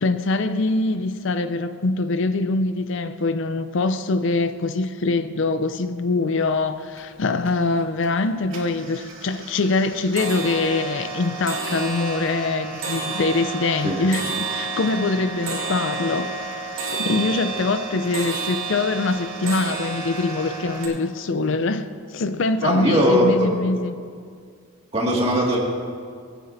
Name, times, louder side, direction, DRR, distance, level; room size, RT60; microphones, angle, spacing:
voice 1, 0.0-16.3 16.9-23.9, left 3 dB, 55° left, 10 dB, 0.4 m, -23 dB
sound 1, 6.5-6.6 6.9-7.5 7.9-8.2 8.5-20.9, right 4 dB, 65° right, 2.9 m, -31 dB
voice 2, 22.6-23.6 24.9-25.6, equal, 25° right, -2 dB, 2.0 m, -19 dB
24.5 x 9.4 x 2.6 m, 2.1 s
head